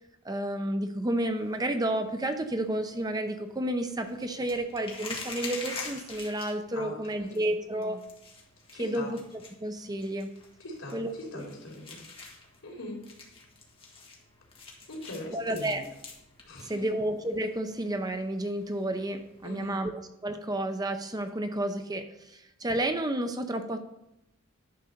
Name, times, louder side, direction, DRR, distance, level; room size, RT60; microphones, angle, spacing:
voice 1, 0.2-8.0 8.8-9.2 9.6-10.3 10.9-11.4 15.3-15.8 16.6-19.9 20.2-23.8, right 1 dB, 20° right, 7 dB, 0.7 m, -31 dB
sound 1, 1.2-19.7, left 3 dB, 25° left, 1.8 m, -47 dB
voice 2, 6.7-7.5 7.7-8.0 8.7-9.1 10.6-12.0 12.6-13.0 14.9-15.8 16.4-16.9 19.4-19.8, left 1 dB, 80° left, -1 dB, 3.2 m, -41 dB
11.0 x 4.0 x 6.6 m, 0.86 s
head